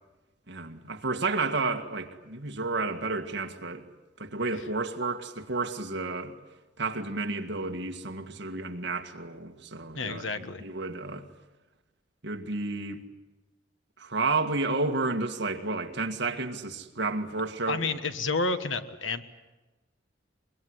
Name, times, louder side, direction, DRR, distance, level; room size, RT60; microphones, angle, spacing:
voice 1, 0.5-3.8 4.2-6.3 6.8-11.3 12.2-13.0 14.0-17.9, right 3 dB, 60° right, 1.9 m, -31 dB
voice 2, 9.9-10.6 17.7-19.2, left 3 dB, 80° left, 1.5 m, -30 dB
24.0 x 22.5 x 9.7 m
head